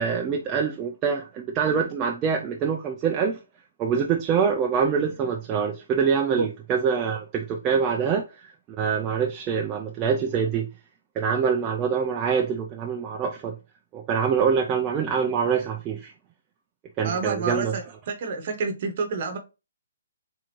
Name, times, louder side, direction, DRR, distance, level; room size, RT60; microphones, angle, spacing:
voice 1, 0.0-3.4 3.8-10.7 11.1-13.6 13.9-16.1 17.0-17.8, right 6 dB, 15° right, 0.3 m, -25 dB
voice 2, 17.0-17.8 18.1-19.4, right 4 dB, 35° right, 0.8 m, -28 dB
3.5 x 3.0 x 4.4 m
hypercardioid pair, 175°, 0 cm